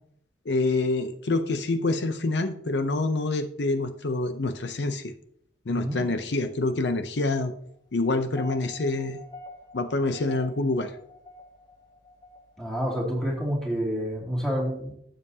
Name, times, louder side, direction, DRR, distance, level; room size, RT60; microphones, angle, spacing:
voice 1, 0.5-5.1 5.7-7.5 7.9-9.2 9.7-11.0, left 2 dB, 65° left, 8 dB, 0.6 m, -26 dB
sound 1, 8.1-13.0, left 1 dB, 20° left, 1.0 m, -47 dB
voice 2, 12.6-14.9, equal, 5° left, -3 dB, 2.5 m, -28 dB
12.0 x 7.5 x 2.8 m, 0.68 s
head